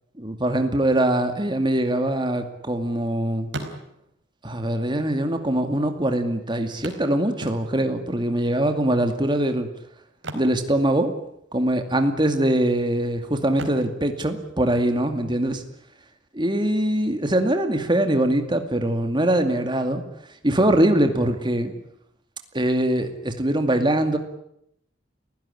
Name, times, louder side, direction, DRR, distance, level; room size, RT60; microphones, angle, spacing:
voice 1, 0.2-3.5 4.4-9.7 10.3-11.1 11.5-15.6 16.3-20.0 20.4-21.7 22.5-24.2, right 1 dB, 25° right, 6 dB, 2.3 m, -22 dB
sound 1, 2.1-3.1 3.4-4.3 5.2-5.3 5.5-5.6 6.8-8.0 10.1-11.4 11.6-11.9 12.4-13.0 13.5-15.3 17.2-17.3 17.8-17.9, right 1 dB, 70° right, 4.5 m, -38 dB
29.5 x 16.5 x 9.9 m, 0.77 s
head